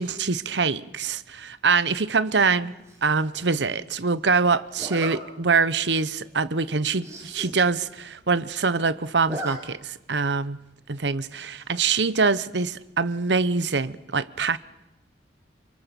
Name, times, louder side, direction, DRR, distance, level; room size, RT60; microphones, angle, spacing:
voice 1, 0.0-2.7 3.0-10.6 10.9-14.6, right 4 dB, 80° right, 1.0 m, -24 dB
Zipper (clothing), 2.8-3.2 4.8-5.2 5.7-5.9 6.2-6.3 6.6-6.7 6.9-7.5 7.9-8.0 8.2-8.7 9.0-9.6 9.9-10.0 11.3-11.7, right 1 dB, 15° right, 4.9 m, -37 dB
28.0 x 25.5 x 7.1 m
head